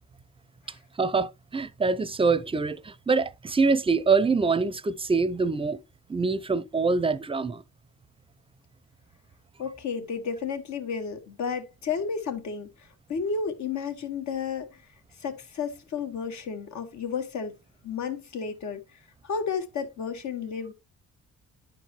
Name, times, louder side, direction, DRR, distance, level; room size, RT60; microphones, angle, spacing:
voice 1, 1.0-5.8 6.1-7.6, right 4 dB, 20° right, 0.6 m, -25 dB
voice 2, 9.6-14.8 15.2-17.6 17.8-18.8 19.2-20.7, left 6 dB, 70° left, 1.6 m, -32 dB
11.0 x 4.6 x 3.0 m
cardioid pair, 90°, 30 cm